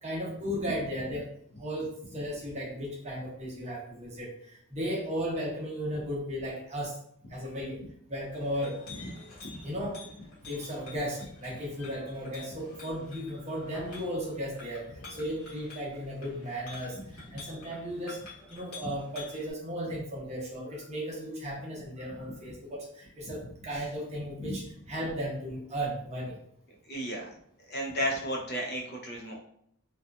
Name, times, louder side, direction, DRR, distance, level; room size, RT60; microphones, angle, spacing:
voice 1, 0.0-1.3 1.6-6.9 7.3-7.8 8.1-8.8 9.6-10.0 10.5-18.2 18.5-26.3, equal, 30° right, -3 dB, 0.7 m, -35 dB
Chink clink, 8.2-19.5, left 3 dB, 85° left, 1.0 m, -49 dB
voice 2, 26.9-27.3 27.7-29.4, equal, 45° left, -2 dB, 0.6 m, -33 dB
2.8 x 2.3 x 2.3 m, 0.68 s
head